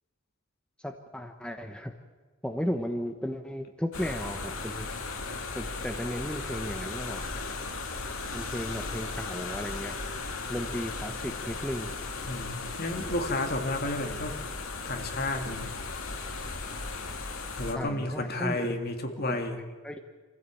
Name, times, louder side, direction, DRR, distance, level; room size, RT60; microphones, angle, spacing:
voice 1, 0.8-1.9 2.4-4.9 5.5-7.3 8.3-10.0 10.5-11.9 17.7-18.7 19.3-19.4 19.8-20.0, equal, 5° left, 5 dB, 1.0 m, -35 dB
sound 1, 3.9-17.7, left 3 dB, 85° left, 2.5 m, -36 dB
voice 2, 12.2-14.3 14.8-15.7 17.6-19.6, left 2 dB, 50° left, 4 dB, 2.4 m, -31 dB
26.0 x 15.5 x 8.4 m, 1.5 s
head